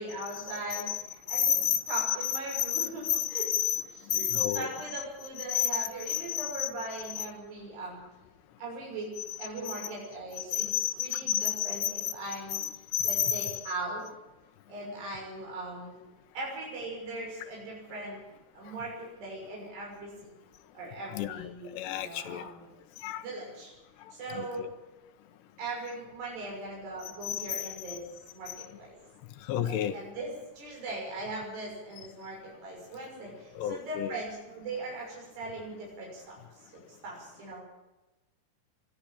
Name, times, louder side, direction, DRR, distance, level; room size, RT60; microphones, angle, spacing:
voice 1, 0.0-1.6 1.9-3.5 4.1-4.3 4.5-8.0 8.6-9.1 9.4-12.6 13.0-14.0 14.7-16.0 16.3-18.2 18.5-20.3 20.7-22.7 23.2-23.7 24.1-24.7 25.6-28.1 28.3-29.0 29.7-37.6, right 2 dB, 80° right, -3 dB, 8.3 m, -39 dB
voice 2, 1.3-3.8 4.1-4.7 5.5-6.7 7.1-7.2 9.6-9.9 10.5-12.1 12.5-13.7 21.1-22.5 23.0-23.2 24.3-24.7 27.3-28.0 28.5-28.6 29.5-30.0 33.6-34.2, left 11 dB, 90° left, 9 dB, 3.3 m, -31 dB
22.0 x 13.0 x 8.9 m, 1.1 s
omnidirectional pair, 4.7 m